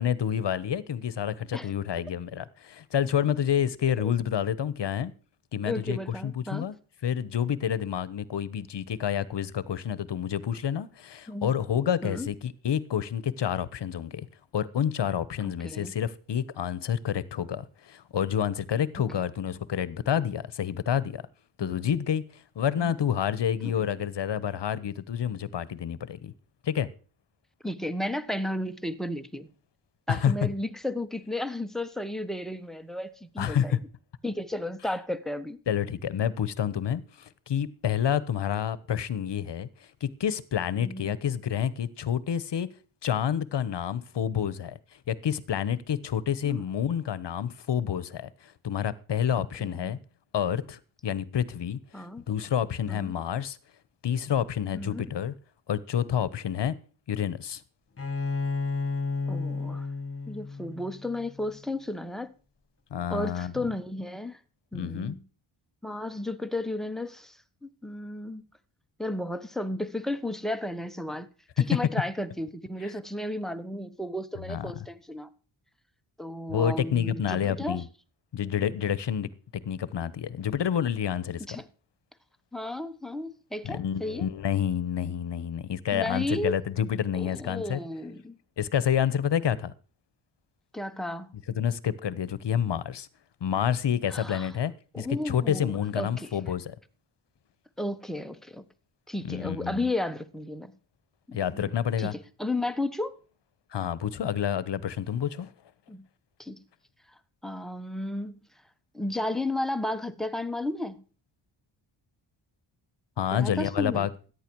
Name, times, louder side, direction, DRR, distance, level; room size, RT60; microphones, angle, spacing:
voice 1, 0.0-5.1 5.5-6.7 7.0-14.3 14.5-21.2 21.6-26.3 26.6-26.9 30.1-30.3 33.4-33.8 35.7-42.7 43.0-44.8 45.1-50.0 50.3-51.8 52.3-53.6 54.0-55.3 55.7-56.8 57.1-57.6 62.9-63.5 64.7-65.2 74.5-74.7 76.5-77.8 78.3-81.6 83.6-87.8 88.6-89.7 91.6-93.1 93.4-96.7 99.2-99.9 101.3-102.1 103.7-105.5 113.2-114.1, left 9 dB, 60° left, 1.2 m, -29 dB
voice 2, 5.6-6.7 11.3-11.5 12.0-12.3 15.4-15.9 21.6-21.9 22.8-22.9 23.6-23.9 27.6-29.5 30.1-33.8 34.2-35.6 40.7-41.2 46.4-46.6 49.4-50.0 51.9-52.3 52.9-53.2 54.7-55.1 59.3-59.9 60.3-62.3 63.1-64.4 64.7-65.2 65.8-68.4 69.0-71.3 71.7-75.3 76.2-77.8 81.5-81.6 82.5-84.3 85.9-86.6 87.1-88.4 90.7-91.3 94.1-94.5 94.9-96.4 97.8-98.6 99.1-100.7 101.3-103.2 105.9-106.0 106.4-106.6 107.4-108.4 108.9-111.0 113.3-114.1, left 1 dB, ahead, 1.2 m, -33 dB
Bowed string instrument, 58.0-61.6, left 4 dB, 25° left, 1.8 m, -32 dB
14.0 x 10.0 x 4.7 m
cardioid pair, 85°, 49 cm